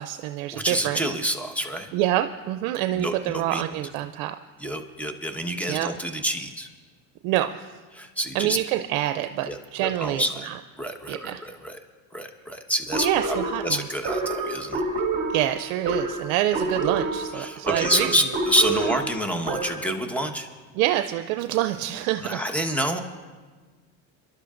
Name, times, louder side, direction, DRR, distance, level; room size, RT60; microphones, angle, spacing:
voice 1, 0.0-1.0 1.9-4.4 5.7-5.9 7.2-7.6 8.3-10.5 11.1-11.4 13.0-13.8 15.3-18.1 20.8-22.4, right 13 dB, 80° right, 8 dB, 0.5 m, -26 dB
voice 2, 0.5-1.9 2.9-3.6 4.6-6.7 7.9-8.6 9.4-9.6 9.8-10.5 10.8-11.8 12.1-13.4 13.6-14.8 17.3-20.5 22.2-23.0, equal, 5° left, 5 dB, 1.2 m, -27 dB
sound 1, 12.9-20.0, right 3 dB, 30° right, 2.4 m, -28 dB
28.0 x 11.5 x 2.5 m, 1.4 s
supercardioid pair, 100°, 41 cm